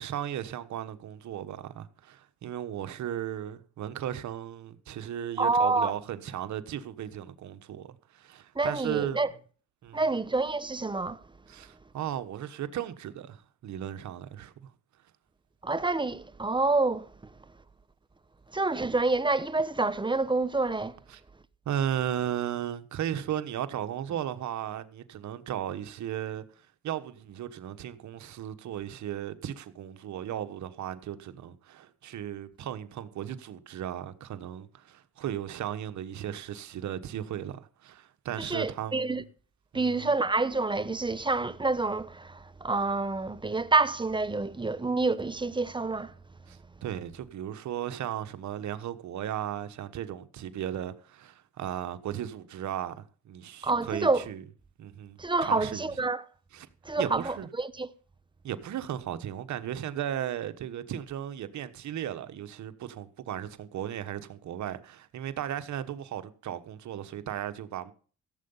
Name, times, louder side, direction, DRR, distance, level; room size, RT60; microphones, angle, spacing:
voice 1, 0.0-9.2 9.8-10.2 11.5-14.7 21.1-21.2 21.6-26.4 26.8-39.1 39.7-40.1 46.5-54.4 54.8-55.9 56.5-56.7 57.0-57.5 58.4-67.9, right 10 dB, 70° right, 1.3 m, -36 dB
voice 2, 5.4-5.9 8.6-9.3 9.9-11.2 15.6-17.1 18.5-21.0 38.4-39.2 39.7-46.1 53.6-54.3 55.2-56.2 56.8-57.9, right 3 dB, 15° right, 0.9 m, -27 dB
16.0 x 7.9 x 5.5 m
cardioid pair, 90°, 30 cm